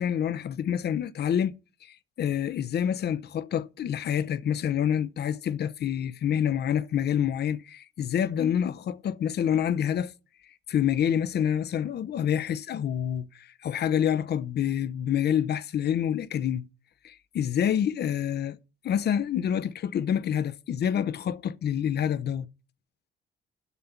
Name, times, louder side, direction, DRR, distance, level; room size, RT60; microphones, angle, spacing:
voice 1, 0.0-1.6 1.9-10.1 10.7-16.7 17.0-18.6 18.8-22.5, left 9 dB, 55° left, 0.6 m, -27 dB
8.3 x 5.7 x 7.8 m
cardioid pair, 90°, 20 cm